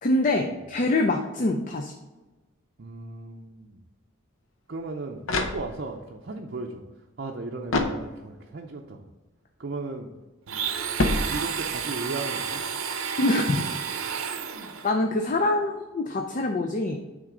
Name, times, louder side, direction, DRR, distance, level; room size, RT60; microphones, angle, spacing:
voice 1, 0.0-1.9 13.2-13.7 14.8-17.0, left 2 dB, 40° left, 3 dB, 0.4 m, -25 dB
voice 2, 2.8-3.8 4.7-6.8 7.2-9.1 9.6-10.1 11.2-12.7 15.3-15.4, right 3 dB, 50° right, 0 dB, 0.5 m, -36 dB
sound 1, 4.8-6.1 7.7-8.6 11.0-11.9, left 2 dB, 70° left, 0.8 m, -28 dB
Domestic sounds home sounds, 10.5-14.9, right 7 dB, 85° right, 0.6 m, -31 dB
9.1 x 3.7 x 3.8 m, 1.1 s
head